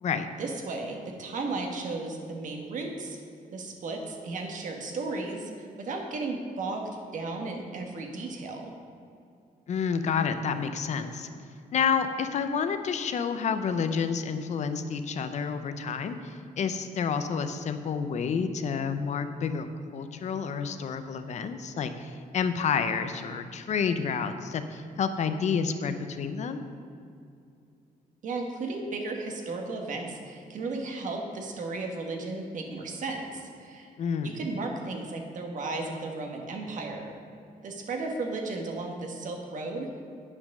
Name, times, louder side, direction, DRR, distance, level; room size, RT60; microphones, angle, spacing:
voice 1, 0.4-3.2 3.5-8.7 28.2-33.9 34.2-37.1 37.6-39.9, right 3 dB, 55° right, 2 dB, 1.4 m, -34 dB
voice 2, 9.7-11.3 11.7-19.7 19.9-26.6 34.0-34.4, left 6 dB, 50° left, 9 dB, 0.6 m, -29 dB
9.5 x 6.1 x 6.5 m, 2.5 s
wide cardioid pair, 180°, 15 cm